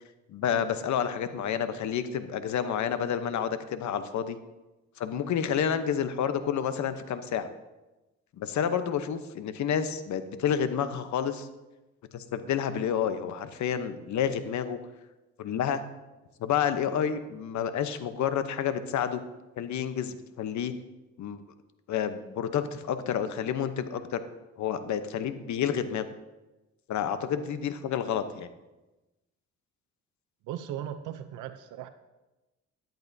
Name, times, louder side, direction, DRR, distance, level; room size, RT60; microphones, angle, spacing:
voice 1, 0.3-4.4 5.0-7.5 8.4-11.5 12.1-14.8 15.4-15.8 16.4-19.2 19.6-20.7 21.2-21.4 21.9-24.2 24.6-26.0 26.9-28.5, left 8 dB, 70° left, 10 dB, 0.9 m, -29 dB
voice 2, 30.5-31.9, right 10 dB, 85° right, 9 dB, 0.7 m, -37 dB
13.5 x 10.5 x 2.7 m, 1.1 s
cardioid pair, 90°, 30 cm